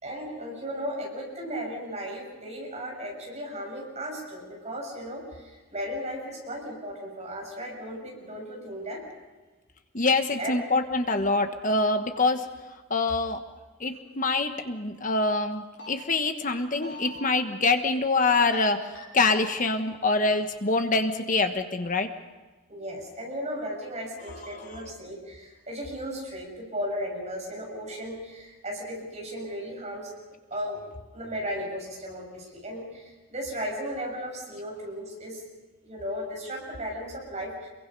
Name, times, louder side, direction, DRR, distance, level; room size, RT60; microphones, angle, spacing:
voice 1, 0.0-9.0 10.4-10.5 22.7-30.1 30.5-30.8 31.1-35.4 35.8-37.7, equal, 30° right, -1 dB, 6.5 m, -35 dB
voice 2, 9.9-12.4 12.9-13.4 13.8-18.8 19.1-22.1 24.3-24.9, left 3 dB, 35° left, 7 dB, 1.3 m, -25 dB
sound 1, 15.5-15.9 16.6-17.1 18.3-18.6 18.9-19.3 20.0-20.5 20.9-21.0, left 2 dB, 55° left, 6.0 m, -42 dB
27.0 x 23.0 x 5.5 m, 1.2 s
head